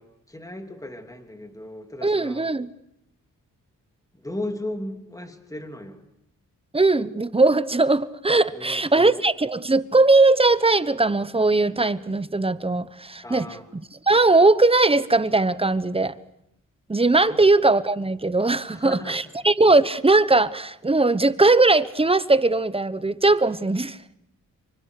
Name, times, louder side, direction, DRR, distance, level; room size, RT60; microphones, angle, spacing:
voice 1, 0.0-2.5 4.1-6.0 8.5-9.2 13.2-13.7 17.3-17.4 18.7-19.2, left 1 dB, 10° left, 3.1 m, -36 dB
voice 2, 2.0-2.7 6.7-13.5 14.1-16.2 16.9-24.0, right 2 dB, 15° right, 1.0 m, -19 dB
26.0 x 24.0 x 6.7 m
cardioid pair, 75°, 32 cm